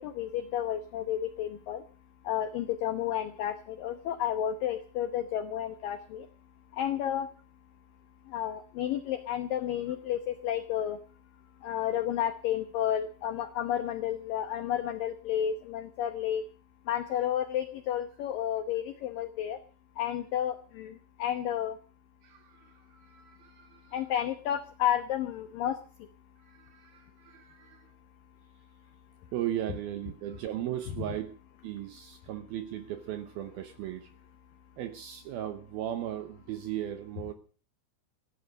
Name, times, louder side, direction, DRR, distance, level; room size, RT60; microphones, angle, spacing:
voice 1, 0.0-1.8 2.2-6.3 6.7-7.3 8.3-11.0 11.6-16.5 16.9-19.6 20.0-21.8 23.9-25.8, left 10 dB, 85° left, 1.9 m, -31 dB
voice 2, 22.2-24.0 26.4-27.9 29.3-31.3 31.6-34.1 34.8-37.3, right 12 dB, 75° right, 2.2 m, -37 dB
15.5 x 12.5 x 6.5 m
omnidirectional pair, 5.4 m